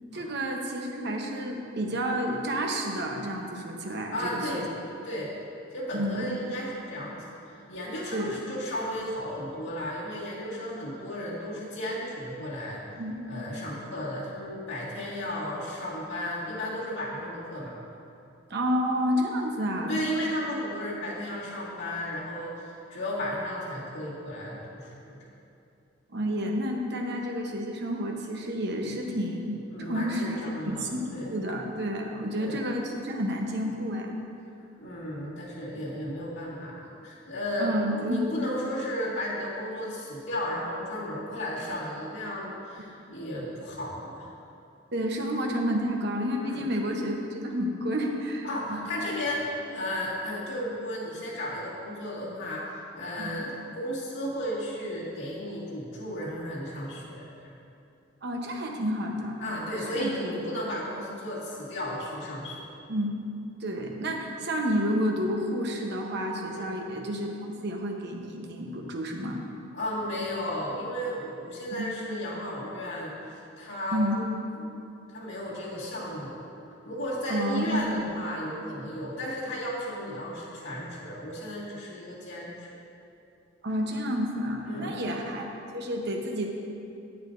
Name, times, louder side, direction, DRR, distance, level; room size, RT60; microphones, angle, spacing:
voice 1, 0.1-4.6 5.9-6.3 8.1-8.3 13.0-13.1 18.5-20.0 26.1-30.4 30.6-34.2 37.6-38.2 44.9-48.8 53.2-53.5 58.2-59.4 59.8-60.3 62.9-63.1 63.6-67.4 67.6-69.4 71.7-71.9 73.9-74.2 77.3-78.0 83.6-85.4 85.7-86.5, equal, 60° right, 1 dB, 0.9 m, -30 dB
voice 2, 4.1-4.7 5.0-5.3 5.7-12.8 13.2-17.8 19.8-25.3 29.7-31.3 32.4-32.6 34.8-44.3 46.4-46.7 48.4-57.5 59.4-62.7 66.5-66.7 69.7-74.3 74.6-74.8 75.1-76.4 76.8-82.7 84.6-85.0, equal, 85° left, -9 dB, 1.8 m, -34 dB
10.5 x 8.3 x 2.6 m, 2.6 s
head